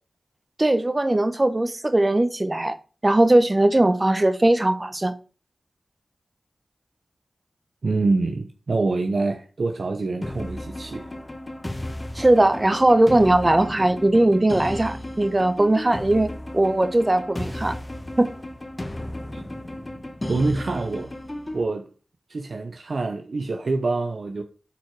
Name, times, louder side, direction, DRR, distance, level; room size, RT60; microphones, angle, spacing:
voice 1, 0.6-2.8 3.0-5.1 12.1-17.8 18.2-18.3, right 1 dB, 30° right, 0.9 m, -19 dB
voice 2, 7.8-11.1 19.3-19.4 20.3-21.1 21.5-21.9 22.3-24.4, right 3 dB, 65° right, 0.8 m, -25 dB
sound 1, 10.2-21.6, left 1 dB, 30° left, 1.3 m, -34 dB
9.3 x 4.7 x 4.7 m
cardioid pair, 40°, 0 cm